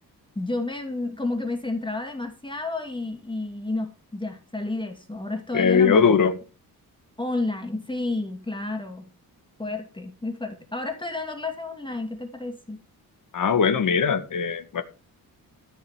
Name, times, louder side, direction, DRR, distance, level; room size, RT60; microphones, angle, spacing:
voice 1, 0.4-6.0 7.2-9.0 9.6-12.8, left 2 dB, 15° left, 2.2 m, -30 dB
voice 2, 5.5-6.3 13.3-14.8, left 6 dB, 55° left, 1.9 m, -20 dB
14.5 x 5.5 x 7.3 m
wide cardioid pair, 125°, 37 cm